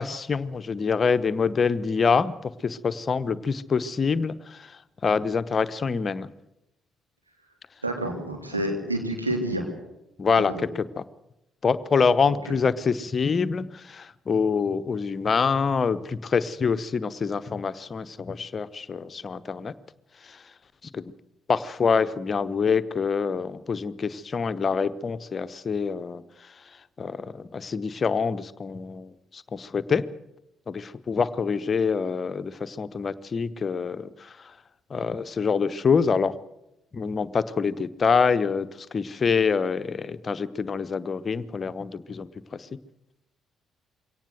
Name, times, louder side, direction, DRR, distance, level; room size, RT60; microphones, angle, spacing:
voice 1, 0.0-6.3 10.2-11.0 11.6-19.7 20.2-20.4 20.9-21.1 21.5-26.5 27.0-30.1 30.7-34.5 34.9-36.4 36.9-42.7, left 5 dB, 35° left, 14 dB, 1.0 m, -26 dB
voice 2, 7.8-9.6 10.3-10.6, right 1 dB, 85° right, 2 dB, 3.2 m, -29 dB
23.0 x 18.0 x 8.0 m, 0.89 s
figure-of-eight pair, 45°, 0 cm